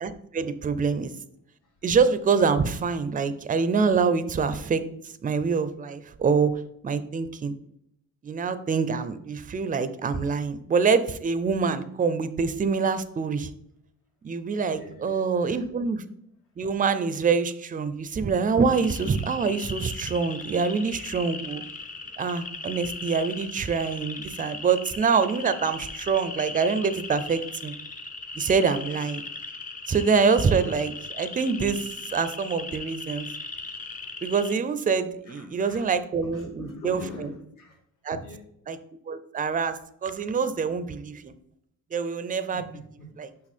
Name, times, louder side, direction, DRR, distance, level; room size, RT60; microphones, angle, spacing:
voice 1, 0.0-1.1 1.8-4.8 5.2-6.5 6.8-7.5 8.2-13.5 14.2-16.0 16.6-21.6 22.2-27.7 28.3-29.2 29.9-33.3 34.2-37.0 38.0-38.2 38.7-38.8 39.1-41.3 41.9-42.6 43.2-43.3, right 5 dB, 25° right, 12 dB, 0.4 m, -25 dB
voice 2, 14.7-15.6 35.2-35.9 36.2-37.8 38.1-38.4 42.5-43.1 43.4-43.5, left 2 dB, 75° left, -1 dB, 2.3 m, -43 dB
sound 1, 18.7-34.5, left 3 dB, 25° left, 0.7 m, -38 dB
6.1 x 5.8 x 4.2 m, 0.75 s
wide cardioid pair, 155°, 32 cm